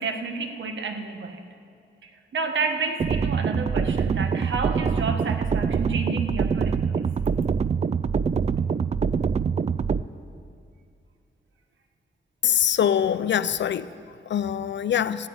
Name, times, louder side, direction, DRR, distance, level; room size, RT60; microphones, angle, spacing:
voice 1, 0.0-1.4 2.0-7.0, right 4 dB, 75° right, 5 dB, 1.5 m, -30 dB
sound 1, 3.0-10.0, right 6 dB, 35° right, 0.3 m, -24 dB
voice 2, 12.4-15.3, left 9 dB, 70° left, 15 dB, 0.5 m, -24 dB
13.5 x 9.6 x 9.6 m, 2.3 s
wide cardioid pair, 135°, 19 cm